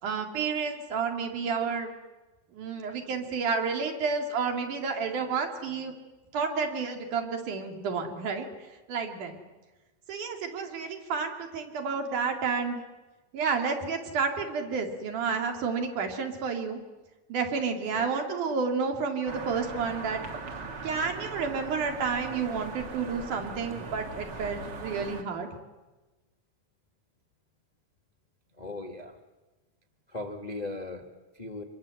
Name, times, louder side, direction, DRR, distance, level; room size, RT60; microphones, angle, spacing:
voice 1, 0.0-1.9 2.5-5.9 6.3-8.5 8.9-9.4 10.1-12.8 13.3-16.8 17.3-20.2 20.8-25.5, right 5 dB, 75° right, 4 dB, 3.9 m, -30 dB
sound 1, 19.3-25.2, right 3 dB, 40° right, 1.9 m, -40 dB
voice 2, 28.6-29.2 30.1-31.6, left 2 dB, 55° left, 4 dB, 0.4 m, -38 dB
26.0 x 21.0 x 7.8 m, 1.2 s
omnidirectional pair, 3.6 m